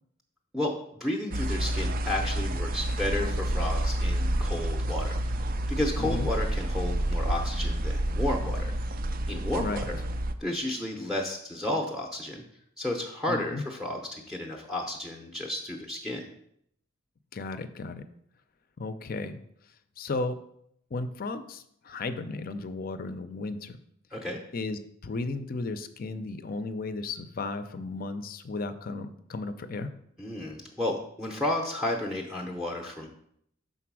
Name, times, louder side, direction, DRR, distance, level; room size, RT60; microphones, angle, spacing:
voice 1, 1.0-5.3 5.7-8.7 9.3-10.0 10.4-12.4 12.8-16.2 24.1-24.4 30.2-33.1, left 1 dB, ahead, -1 dB, 0.6 m, -32 dB
sound 1, 1.3-10.3, right 1 dB, 45° right, 0.4 m, -29 dB
voice 2, 6.0-6.3 9.6-9.9 13.3-13.6 17.3-18.1 18.8-19.4 20.0-20.4 20.9-23.8 24.5-30.0, left 3 dB, 45° left, 11 dB, 0.5 m, -34 dB
5.9 x 4.0 x 6.0 m, 0.72 s
head